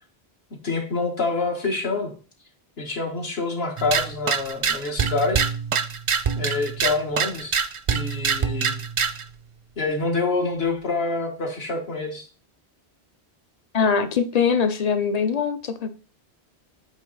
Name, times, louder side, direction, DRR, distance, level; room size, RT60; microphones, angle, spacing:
voice 1, 0.6-2.1 2.8-5.5 6.4-7.6 7.9-8.8 9.8-12.3, left 3 dB, 70° left, 1 dB, 1.6 m, -26 dB
sound 1, 3.8-9.3, right 6 dB, 55° right, 0.3 m, -25 dB
voice 2, 13.7-15.9, left 6 dB, 50° left, 10 dB, 0.5 m, -22 dB
8.2 x 3.1 x 3.9 m, 0.37 s
omnidirectional pair, 1.1 m